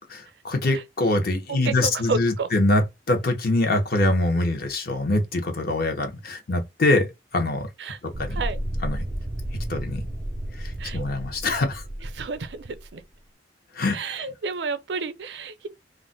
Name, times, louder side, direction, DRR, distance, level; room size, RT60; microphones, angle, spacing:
voice 1, 0.1-7.7 8.2-8.4 8.8-9.0 9.7-10.0 10.6-11.8 13.7-14.0, left 2 dB, 55° left, 0.8 m, -24 dB
voice 2, 1.5-2.5 7.8-8.0 8.3-8.6 10.8-11.1 12.1-13.0 13.9-15.7, right 4 dB, 70° right, 0.5 m, -31 dB
sound 1, 8.1-12.9, right 1 dB, 20° right, 0.4 m, -32 dB
2.4 x 2.1 x 3.8 m
head